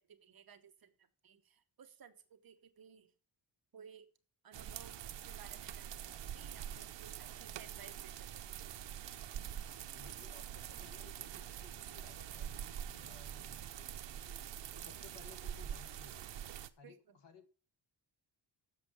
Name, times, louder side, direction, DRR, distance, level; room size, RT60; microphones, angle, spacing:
voice 1, 0.0-3.1 3.7-4.1 4.4-5.0 5.2-8.7 16.8-17.2, right 7 dB, 50° right, 8 dB, 1.1 m, -58 dB
sound 1, 4.5-16.7, right 10 dB, 75° right, 0.8 m, -45 dB
voice 2, 9.9-14.5 14.7-16.4 16.8-17.0 17.2-17.5, left 5 dB, 70° left, 7 dB, 1.9 m, -60 dB
7.4 x 7.3 x 7.9 m, 0.38 s
wide cardioid pair, 165°, 45 cm